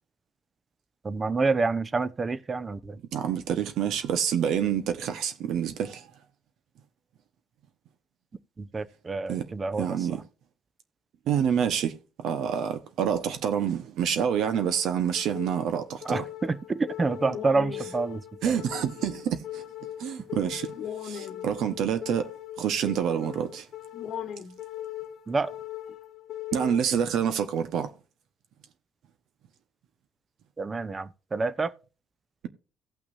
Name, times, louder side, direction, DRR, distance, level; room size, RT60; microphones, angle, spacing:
voice 1, 1.0-3.0 8.6-9.9 16.0-18.6 25.3-25.5 30.6-31.7, right 3 dB, 25° right, 0.7 m, -28 dB
voice 2, 3.1-6.1 9.3-9.4 9.8-10.2 11.3-11.9 12.2-16.2 18.4-19.6 20.0-20.7 21.0-22.3 22.6-23.7 26.5-27.9, right 8 dB, 70° right, 1.1 m, -27 dB
sound 1, 14.3-27.3, left 11 dB, 65° left, 1.1 m, -40 dB
17.5 x 5.9 x 2.6 m
cardioid pair, 90°, 0 cm